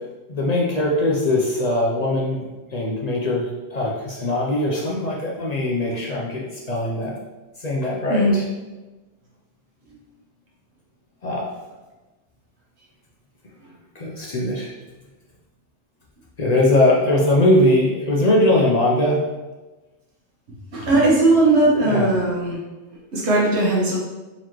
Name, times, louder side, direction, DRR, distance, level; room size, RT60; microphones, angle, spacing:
voice 1, 0.3-2.4 2.7-7.1 7.6-8.4 11.2-11.5 14.0-14.7 16.4-19.2 21.8-22.1, left 1 dB, 50° left, -3 dB, 0.5 m, -21 dB
voice 2, 20.7-22.6 23.1-24.0, right 2 dB, 65° right, -4 dB, 1.2 m, -18 dB
4.1 x 3.0 x 2.9 m, 1.1 s
omnidirectional pair, 1.2 m